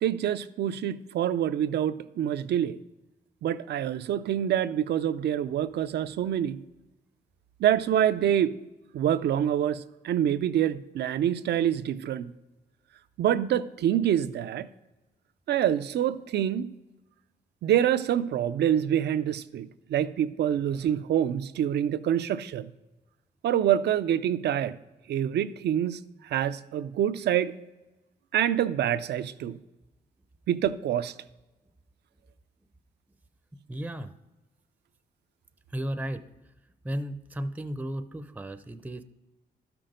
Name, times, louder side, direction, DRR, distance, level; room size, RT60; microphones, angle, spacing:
voice 1, 0.0-2.8 3.4-6.6 7.6-8.5 8.9-12.3 13.2-14.7 15.5-16.7 17.6-22.7 23.4-24.8 25.1-26.0 26.3-27.5 28.3-29.6 30.5-31.1, right 10 dB, 80° right, 0.5 m, -26 dB
voice 2, 33.7-34.1 35.7-36.2 36.8-39.0, right 1 dB, 10° right, 0.5 m, -34 dB
12.5 x 6.0 x 5.0 m
cardioid pair, 85°, 17 cm